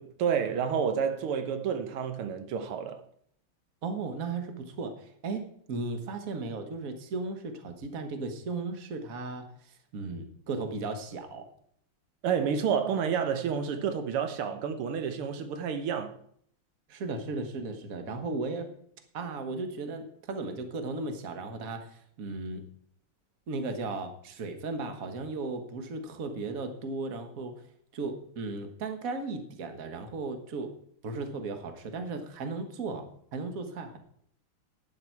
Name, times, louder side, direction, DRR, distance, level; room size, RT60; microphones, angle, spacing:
voice 1, 0.0-3.0 12.2-16.1, right 7 dB, 90° right, 1.9 m, -29 dB
voice 2, 3.8-11.5 16.9-18.7 19.1-22.6 23.5-27.5 27.9-30.7 31.0-33.1 33.3-34.0, right 3 dB, 45° right, 1.6 m, -36 dB
11.5 x 9.6 x 4.6 m
omnidirectional pair, 2.3 m